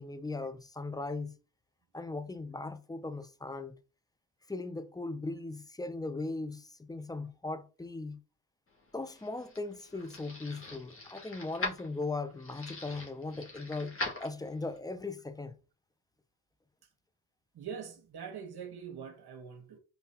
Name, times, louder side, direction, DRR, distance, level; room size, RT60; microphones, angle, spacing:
voice 1, 0.0-1.3 1.9-3.8 4.5-8.2 8.9-15.6, left 3 dB, 10° left, 0.5 m, -38 dB
sound 1, 8.8-14.8, left 2 dB, 25° left, 1.7 m, -42 dB
voice 2, 17.5-19.8, right 7 dB, 50° right, 1.4 m, -43 dB
4.0 x 3.8 x 2.9 m
supercardioid pair, 65°, 48 cm